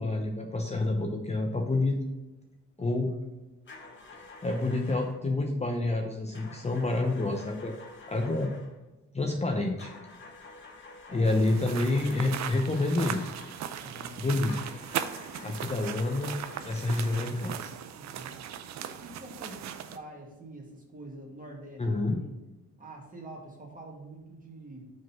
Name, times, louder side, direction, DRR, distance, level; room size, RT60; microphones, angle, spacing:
voice 1, 0.0-2.0 2.8-3.1 4.4-7.8 8.1-8.5 9.1-9.9 11.1-13.2 14.2-14.6 15.4-16.4 16.6-17.7 21.8-22.2, left 2 dB, 20° left, 2 dB, 0.8 m, -28 dB
voice 2, 2.8-3.2 11.1-11.3 13.8-14.3 15.3-15.7 18.0-18.4 18.8-22.3 22.8-24.9, right 1 dB, 25° right, 0 dB, 1.9 m, -46 dB
sound 1, 3.7-5.3 6.3-8.8 9.8-13.8 14.5-17.7, left 3 dB, 40° left, 1.3 m, -49 dB
sound 2, 11.2-20.0, right 9 dB, 65° right, 0.6 m, -38 dB
5.2 x 3.8 x 5.8 m, 1.1 s
cardioid pair, 90°, 30 cm